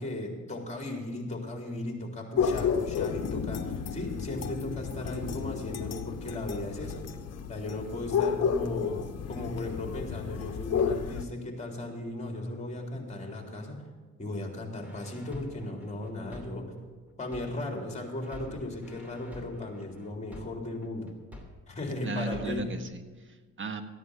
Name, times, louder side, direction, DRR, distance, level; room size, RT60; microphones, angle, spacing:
voice 1, 0.0-7.1 7.5-13.8 14.2-16.7 17.2-21.1 21.7-22.7, left 1 dB, 25° left, 1 dB, 3.6 m, -36 dB
sound 1, 2.4-11.2, left 7 dB, 55° left, 1.1 m, -31 dB
sound 2, 14.8-17.8 18.2-21.8 22.2-22.8, left 1 dB, 5° right, 2.8 m, -48 dB
voice 2, 22.0-23.8, right 3 dB, 40° right, 7 dB, 1.5 m, -36 dB
15.0 x 10.0 x 5.5 m, 1.4 s
cardioid pair, 90°, 30 cm